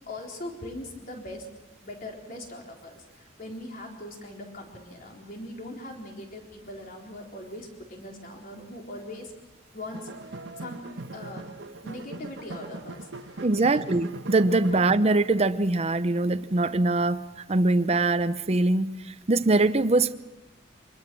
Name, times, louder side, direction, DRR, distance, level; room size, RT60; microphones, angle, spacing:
voice 1, 0.1-1.5 1.8-9.3 9.7-10.9 11.1-11.4 11.8-13.6, left 1 dB, 50° left, 0 dB, 4.0 m, -41 dB
sound 1, 9.9-15.0, right 2 dB, 75° right, 1.2 m, -40 dB
voice 2, 13.4-20.2, right 2 dB, 35° right, 12 dB, 0.7 m, -23 dB
25.5 x 21.5 x 6.2 m, 1.0 s
head